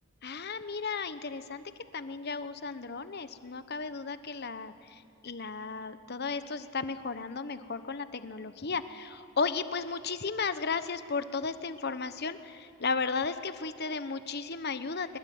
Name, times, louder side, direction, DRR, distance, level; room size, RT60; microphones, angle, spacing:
voice 1, 0.2-1.6 1.9-15.2, left 4 dB, 50° left, 11 dB, 1.0 m, -34 dB
23.0 x 21.5 x 9.4 m, 2.4 s
head